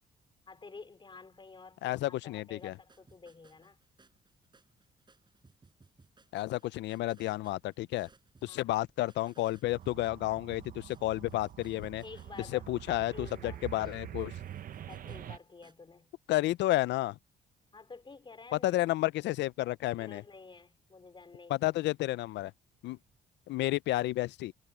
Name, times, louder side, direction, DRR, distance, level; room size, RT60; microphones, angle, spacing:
voice 1, 0.5-3.8 8.4-8.7 12.0-13.6 14.9-16.1 17.7-18.9 19.9-21.6, left 4 dB, 25° left, 4.7 m, -50 dB
voice 2, 1.8-2.7 6.3-8.1 8.4-12.0 12.5-14.3 16.3-17.2 18.6-20.2 21.6-22.5 22.8-23.0 23.5-24.5, left 16 dB, 85° left, 0.5 m, -31 dB
sound 1, 2.6-15.7, right 4 dB, 25° right, 5.9 m, -64 dB
sound 2, 9.7-15.4, right 11 dB, 50° right, 0.7 m, -45 dB
cardioid pair, 110°, 18 cm